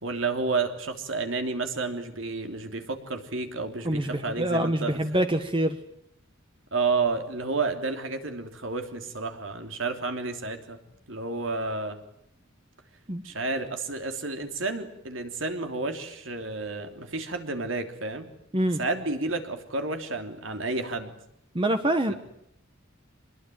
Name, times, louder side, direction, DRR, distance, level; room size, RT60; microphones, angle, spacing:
voice 1, 0.0-5.2 6.7-10.8 11.1-12.0 13.2-18.3 18.8-21.1 22.1-22.2, right 3 dB, 70° right, 6 dB, 3.2 m, -31 dB
voice 2, 3.8-5.8 13.1-13.2 18.5-18.8 21.5-22.1, right 1 dB, 25° right, 7 dB, 1.4 m, -25 dB
25.5 x 21.0 x 9.3 m, 0.75 s
head